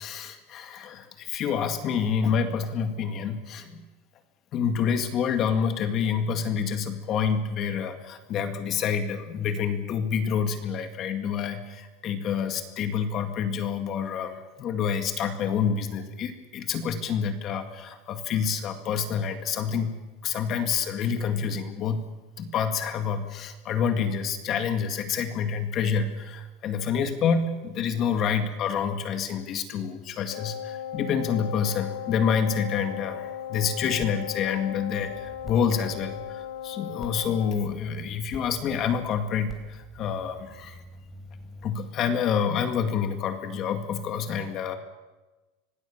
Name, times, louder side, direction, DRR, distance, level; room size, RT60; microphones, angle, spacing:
voice 1, 0.0-3.8 4.5-20.0 20.2-22.1 22.4-40.8 41.6-44.8, left 7 dB, 35° left, 7 dB, 2.1 m, -28 dB
Wind instrument woodwind instrument, 30.3-37.6, left 10 dB, 85° left, 0.8 m, -37 dB
sound 1, 34.0-41.8, left 1 dB, ahead, 3.4 m, -47 dB
26.0 x 18.5 x 7.3 m, 1.2 s
supercardioid pair, 160°, 0 cm